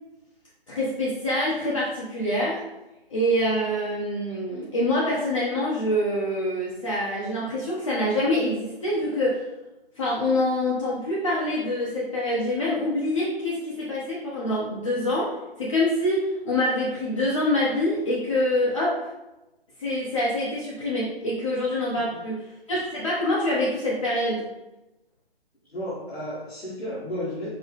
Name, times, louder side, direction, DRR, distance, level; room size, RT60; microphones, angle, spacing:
voice 1, 0.7-2.6 3.1-9.4 10.0-19.0 19.8-24.5, left 1 dB, 30° left, -7 dB, 0.6 m, -25 dB
voice 2, 25.7-27.5, equal, 85° left, -7 dB, 1.3 m, -33 dB
4.7 x 2.1 x 3.3 m, 0.99 s
figure-of-eight pair, 150°, 31 cm